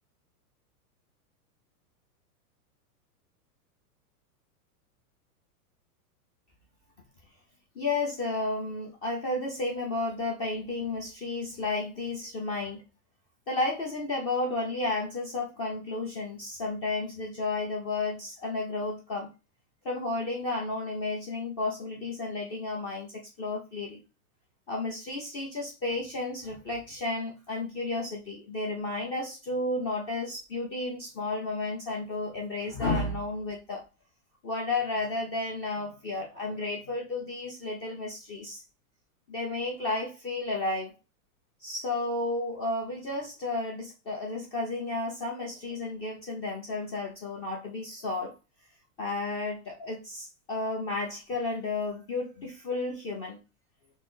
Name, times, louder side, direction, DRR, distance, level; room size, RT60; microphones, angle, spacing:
voice 1, 7.7-12.8 13.5-19.3 19.8-24.0 24.7-33.8 34.4-38.6 39.3-40.9 41.6-48.3 49.0-53.4, left 2 dB, 30° left, 0.9 m, -32 dB
4.4 x 2.1 x 3.9 m
hypercardioid pair, 135°, 46 cm